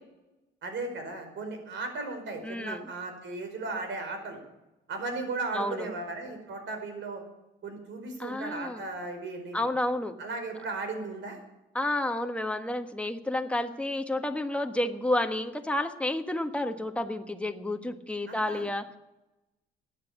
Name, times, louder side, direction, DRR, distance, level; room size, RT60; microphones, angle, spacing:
voice 1, 0.6-4.4 4.9-7.2 7.6-9.6 10.2-11.4 18.3-18.7, right 3 dB, 70° right, 6 dB, 4.9 m, -36 dB
voice 2, 2.4-2.9 5.5-5.9 8.2-8.8 9.5-10.1 11.7-18.9, left 1 dB, 5° left, 6 dB, 1.4 m, -30 dB
14.5 x 10.0 x 7.2 m, 0.97 s
cardioid pair, 90°, 20 cm